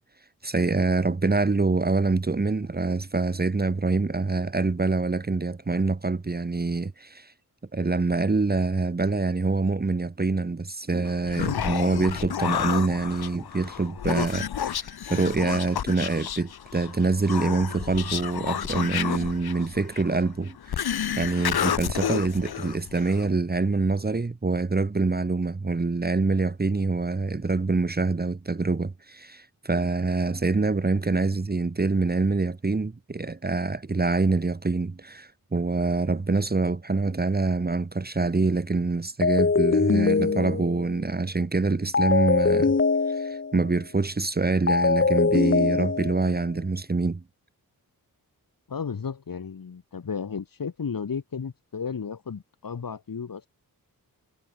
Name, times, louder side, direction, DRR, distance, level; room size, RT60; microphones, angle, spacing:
voice 1, 0.4-7.3 7.7-20.7 21.2-42.7 43.1-47.2, right 3 dB, 25° right, 1.8 m, -25 dB
Human voice, 11.0-23.3, left 9 dB, 85° left, 1.4 m, -30 dB
sound 1, 39.2-40.9 41.9-43.6 44.7-46.4, left 4 dB, 35° left, 2.2 m, -22 dB
voice 2, 48.7-53.5, left 6 dB, 65° left, 7.5 m, -33 dB
wide cardioid pair, 130°, 37 cm